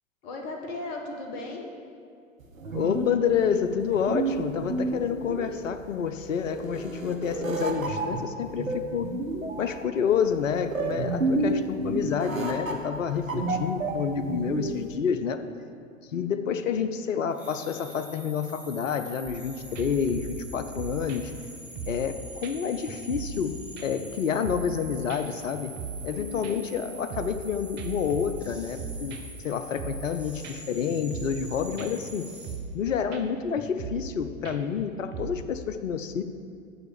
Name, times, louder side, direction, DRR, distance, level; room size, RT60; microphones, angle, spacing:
voice 1, 0.2-1.7 16.1-16.6 26.1-26.6, left 2 dB, 40° left, 1 dB, 1.6 m, -37 dB
sound 1, 2.4-14.9, right 2 dB, 80° right, 1.2 m, -30 dB
voice 2, 2.7-9.1 9.6-15.4 16.1-21.3 21.9-25.7 26.0-29.2 29.4-32.3 32.7-36.2, left 7 dB, 70° left, 9 dB, 0.7 m, -29 dB
sound 2, 17.3-32.5, right 2 dB, 5° right, 1.3 m, -45 dB
sound 3, 19.2-19.4 19.7-22.1 22.4-22.5 22.9-23.5 23.8-24.8 25.1-25.2 25.5-26.1 26.4-27.5 27.8-29.4 29.8-30.1 30.4-30.6 30.9-31.5 31.8-32.1 32.4-32.8 33.1-33.2 33.6-34.1 34.4-35.5, right 5 dB, 25° right, 0.7 m, -38 dB
6.9 x 6.5 x 7.3 m, 2.3 s
figure-of-eight pair, 100°, 40 cm